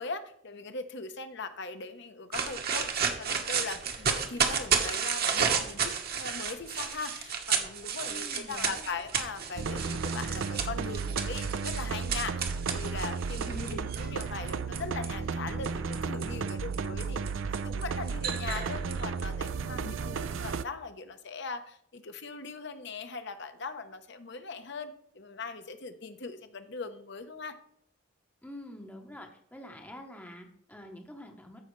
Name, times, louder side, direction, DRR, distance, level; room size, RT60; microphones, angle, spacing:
voice 1, 0.0-17.2 17.6-27.6, left 4 dB, 55° left, 9 dB, 0.9 m, -40 dB
sound 1, 2.3-15.1 15.6-19.5, right 6 dB, 45° right, 1.1 m, -32 dB
voice 2, 8.1-9.1 13.4-13.9 28.4-31.6, equal, 10° left, 3 dB, 0.8 m, -46 dB
sound 2, 9.6-20.6, right 5 dB, 65° right, 0.4 m, -34 dB
14.0 x 5.6 x 3.2 m, 0.67 s
head